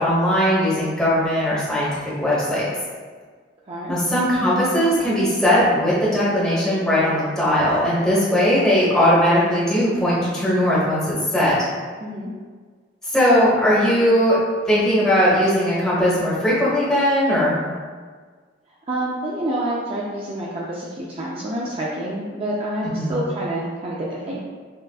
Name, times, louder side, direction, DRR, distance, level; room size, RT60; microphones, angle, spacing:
voice 1, 0.0-2.7 3.9-11.6 13.1-14.4 14.7-17.5 22.8-23.2, equal, 5° left, -9 dB, 1.2 m, -19 dB
voice 2, 12.0-12.3 18.9-24.4, right 1 dB, 30° right, -5 dB, 0.4 m, -27 dB
6.3 x 2.4 x 2.3 m, 1.5 s
head